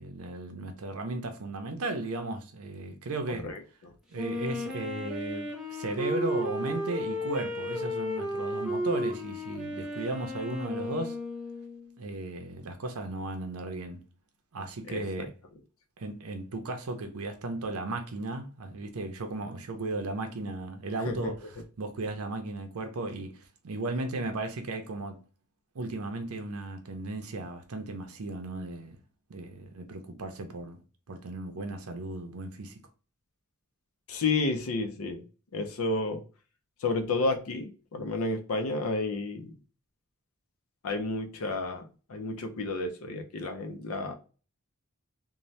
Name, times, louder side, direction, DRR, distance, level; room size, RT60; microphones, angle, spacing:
voice 1, 0.0-3.5 4.1-11.2 12.0-14.0 14.5-15.3 16.0-21.5 21.8-25.2 25.7-29.0 29.3-30.8 31.1-32.8, right 2 dB, 80° right, 0.6 m, -35 dB
voice 2, 3.3-3.9 14.9-15.3 21.0-21.3 34.1-35.2 35.5-36.2 36.8-39.5 40.8-44.1, left 3 dB, 75° left, 0.5 m, -31 dB
Wind instrument woodwind instrument, 4.2-11.9, left 1 dB, ahead, 0.6 m, -34 dB
2.6 x 2.2 x 3.1 m
head